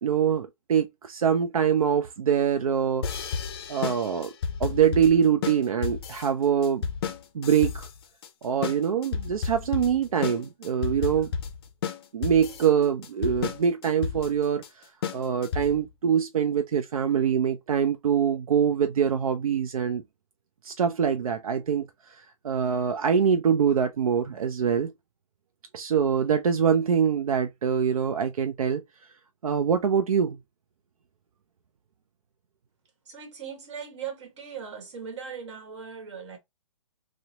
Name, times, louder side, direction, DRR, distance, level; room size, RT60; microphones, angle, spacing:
voice 1, 0.0-3.1 3.7-4.3 4.6-6.8 7.3-7.9 8.4-11.3 12.1-14.9 15.1-20.0 20.6-24.9 25.7-28.8 29.4-30.4, right 7 dB, 90° right, 0.4 m, -24 dB
basic drum loop, 3.0-15.9, left 6 dB, 45° left, 0.4 m, -32 dB
voice 2, 33.0-36.4, right 7 dB, 55° right, 1.2 m, -39 dB
2.8 x 2.0 x 2.7 m
hypercardioid pair, 150°, 18 cm